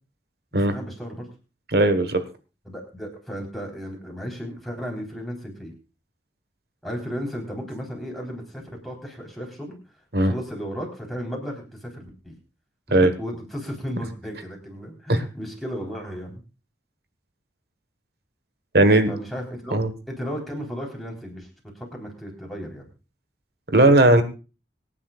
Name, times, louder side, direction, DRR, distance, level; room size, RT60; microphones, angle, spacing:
voice 1, 0.6-1.3 2.6-5.7 6.8-9.8 10.2-12.3 12.9-16.4 19.1-19.8 20.1-22.9, equal, ahead, -1 dB, 4.0 m, -34 dB
voice 2, 1.7-2.2 10.1-10.3 12.9-13.1 15.1-15.2 18.7-19.1 19.7-19.9 23.7-24.2, right 1 dB, 55° right, 9 dB, 1.5 m, -17 dB
25.0 x 10.0 x 2.5 m, 0.32 s
head